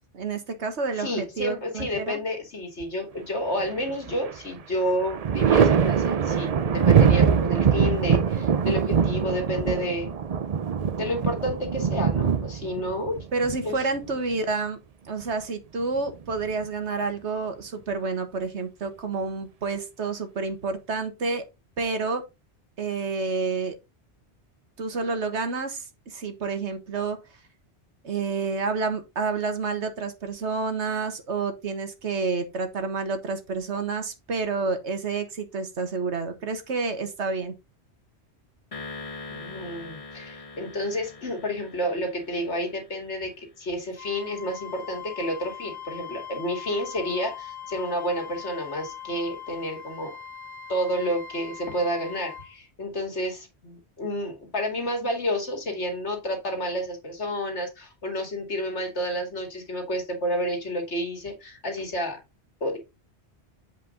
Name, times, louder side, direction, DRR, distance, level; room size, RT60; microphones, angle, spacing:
voice 1, 0.1-2.2 13.3-14.8 15.1-21.4 21.8-22.2 22.8-23.7 24.8-27.2 28.0-37.5, right 4 dB, 80° right, 1.7 m, -29 dB
voice 2, 0.9-10.1 11.0-13.2 13.6-13.7 39.3-50.1 50.7-62.2 62.6-62.8, equal, 75° left, 2.4 m, -30 dB
Thunder, 3.6-4.4 4.7-14.3 15.8-16.6, right 7 dB, 45° right, 0.5 m, -23 dB
sound 1, 38.7-43.2, left 3 dB, 30° left, 1.1 m, -42 dB
Wind instrument woodwind instrument, 44.0-52.5, left 8 dB, 10° right, 2.1 m, -41 dB
8.0 x 5.1 x 3.8 m
omnidirectional pair, 1.1 m